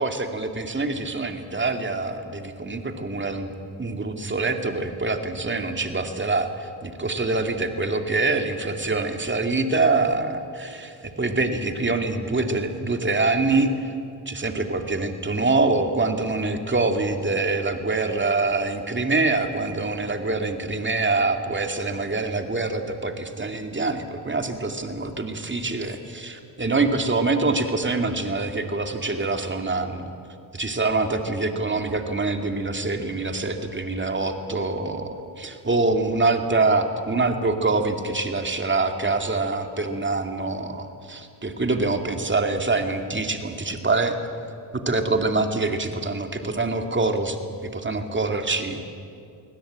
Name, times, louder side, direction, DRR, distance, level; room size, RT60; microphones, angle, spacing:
voice 1, 0.0-3.5 3.8-13.7 14.3-30.1 30.5-44.2 44.7-47.4 47.7-48.8, right 3 dB, 25° right, 6 dB, 2.5 m, -25 dB
23.0 x 17.0 x 8.9 m, 2.5 s
cardioid pair, 70°, 41 cm